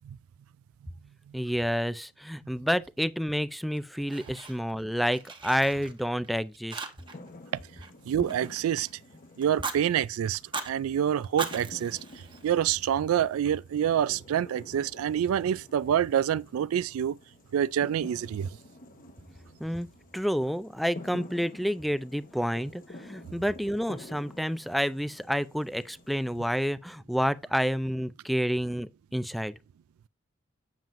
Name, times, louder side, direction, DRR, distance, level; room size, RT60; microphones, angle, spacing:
voice 1, 1.3-6.8 19.6-19.9 20.1-29.5, equal, ahead, 0.4 m, -29 dB
Fire, 3.7-4.8 5.1-6.3 6.7-7.3 7.5-8.9 9.4-9.8 10.3-10.7 11.2-12.8, right 4 dB, 25° right, 1.0 m, -39 dB
sound 1, 7.0-26.6, left 2 dB, 40° left, 1.0 m, -49 dB
voice 2, 8.1-8.9 9.4-12.0 12.4-17.2 17.5-18.5, right 9 dB, 85° right, 0.3 m, -27 dB
7.6 x 7.1 x 2.5 m
head